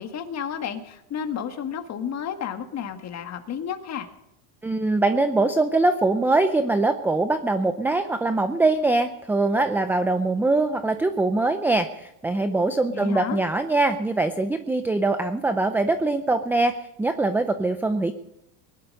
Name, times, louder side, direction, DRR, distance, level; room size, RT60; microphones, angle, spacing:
voice 1, 0.0-4.1 12.9-13.4, left 8 dB, 30° left, 7 dB, 1.8 m, -32 dB
voice 2, 4.6-18.1, right 2 dB, 5° right, 9 dB, 0.5 m, -23 dB
20.5 x 11.5 x 5.4 m, 0.85 s
supercardioid pair, 135°, 49 cm